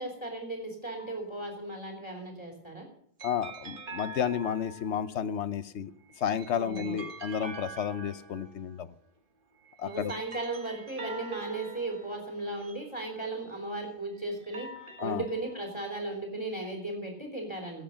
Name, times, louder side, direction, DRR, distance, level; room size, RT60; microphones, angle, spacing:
voice 1, 0.0-2.9 6.5-7.0 9.8-14.7 15.0-17.8, right 2 dB, 25° left, 1 dB, 3.1 m, -36 dB
sound 1, 0.9-1.6 3.2-5.2 6.1-8.9 9.6-13.7 14.3-15.9, right 3 dB, 50° right, 1.6 m, -46 dB
voice 2, 3.2-5.9 6.2-8.9 9.8-10.1 15.0-15.2, left 8 dB, 85° left, 14 dB, 1.1 m, -31 dB
17.5 x 8.1 x 6.4 m, 0.67 s
omnidirectional pair, 1.1 m